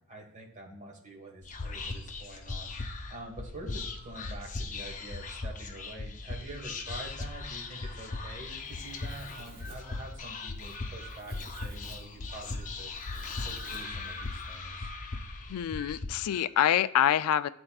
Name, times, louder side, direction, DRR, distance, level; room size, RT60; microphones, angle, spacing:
voice 1, 0.1-12.9 13.4-14.9, right 1 dB, 35° right, 0 dB, 1.4 m, -46 dB
Whispering, 1.4-16.1, left 3 dB, 35° left, 0.7 m, -39 dB
sound 1, 2.7-3.1 3.7-4.3 4.9-5.9 6.5-8.4 9.0-11.8 12.3-12.8 13.3-15.3 15.7-16.0 16.3-16.7, right 1 dB, 15° right, 0.9 m, -52 dB
Domestic sounds home sounds, 8.3-14.5, right 2 dB, 65° right, 1.5 m, -55 dB
voice 2, 15.5-17.5, left 10 dB, 90° left, 15 dB, 0.3 m, -26 dB
12.0 x 4.3 x 2.3 m, 0.77 s
head